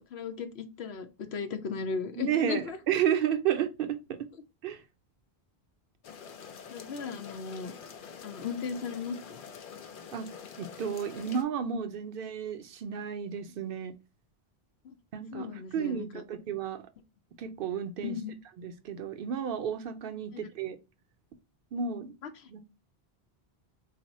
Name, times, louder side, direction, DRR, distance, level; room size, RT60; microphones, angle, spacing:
voice 1, 0.0-2.8 6.7-7.7 8.2-9.5 14.8-15.0 15.3-16.2 18.0-18.3 20.3-20.5 22.2-22.3, left 5 dB, 90° left, 0.9 m, -36 dB
voice 2, 2.2-4.2 4.6-4.8 10.1-10.3 10.6-13.9 15.1-16.9 17.4-18.2 18.6-20.8 21.7-22.1 22.5-22.6, right 8 dB, 65° right, 0.7 m, -32 dB
sound 1, 6.0-11.4, left 7 dB, 60° left, 0.7 m, -46 dB
4.1 x 2.1 x 4.0 m
omnidirectional pair, 1.0 m